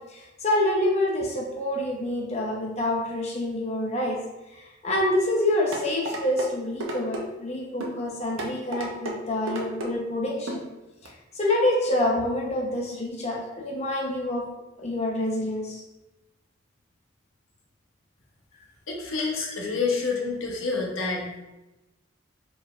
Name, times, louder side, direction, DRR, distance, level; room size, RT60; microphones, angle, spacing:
voice 1, 0.1-4.2 4.5-10.6 11.0-14.5 14.8-15.8 19.2-19.3, left 1 dB, 35° left, -2 dB, 0.8 m, -27 dB
sound 1, 5.7-6.5 6.8-7.2 7.8-8.0 8.4-9.2 9.5-9.9 10.5-10.6 11.1-11.2, right 1 dB, 85° right, 0.8 m, -32 dB
voice 2, 18.9-21.4, left 4 dB, 85° left, 0 dB, 0.9 m, -28 dB
4.6 x 4.2 x 2.4 m, 1.0 s
head